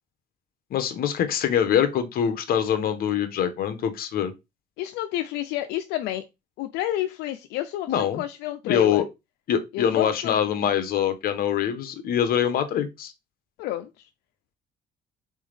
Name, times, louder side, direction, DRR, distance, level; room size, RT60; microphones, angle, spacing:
voice 1, 0.7-4.3 7.9-8.2 8.7-9.0 9.5-13.1, left 9 dB, 65° left, 0.9 m, -24 dB
voice 2, 4.8-6.2 6.6-9.0 9.7-10.3 13.6-14.1, left 13 dB, 90° left, 0.4 m, -30 dB
3.9 x 3.5 x 3.3 m
cardioid pair, 110°, 17 cm